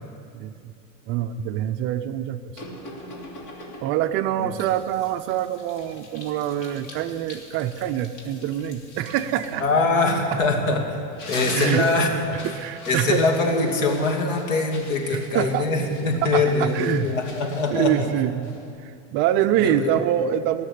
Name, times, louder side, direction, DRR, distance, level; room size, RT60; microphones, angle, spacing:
voice 1, 1.1-2.4 3.8-9.6 11.5-11.9 12.4-13.2 15.1-15.6 16.2-17.1 17.7-20.6, right 11 dB, 35° right, 9 dB, 0.4 m, -25 dB
sound 1, 2.6-4.1 4.6-10.7 11.0-18.8, left 1 dB, 55° left, 3.0 m, -41 dB
voice 2, 9.6-11.0 11.3-12.4 12.9-18.1 19.6-19.9, left 3 dB, 85° left, 2 dB, 2.6 m, -23 dB
19.0 x 6.6 x 10.0 m, 2.4 s
supercardioid pair, 150°, 38 cm